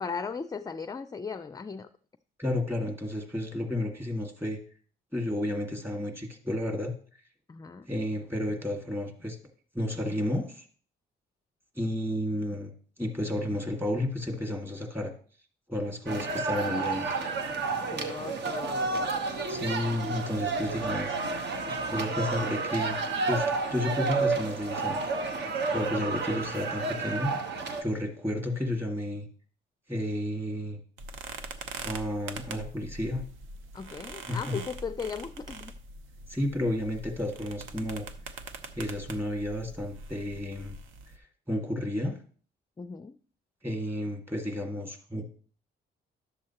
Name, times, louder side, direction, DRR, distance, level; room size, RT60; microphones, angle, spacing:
voice 1, 0.0-1.9 7.5-7.9 17.9-19.1 33.7-35.7 42.8-43.2, left 5 dB, 20° left, 11 dB, 0.4 m, -37 dB
voice 2, 2.4-4.6 5.1-6.9 7.9-9.4 9.7-10.7 11.8-12.7 13.0-15.1 15.7-17.1 19.5-21.2 21.9-23.0 23.3-25.0 25.7-27.3 27.8-29.3 29.9-30.8 31.8-33.2 34.2-34.6 36.3-38.1 38.7-40.8 41.5-42.2 43.6-45.2, left 1 dB, 10° right, 3 dB, 1.9 m, -31 dB
sound 1, 16.1-27.8, right 4 dB, 60° right, 1.2 m, -31 dB
sound 2, 31.0-41.2, right 3 dB, 80° right, 0.8 m, -43 dB
11.0 x 7.4 x 2.9 m, 0.43 s
cardioid pair, 90°, 20 cm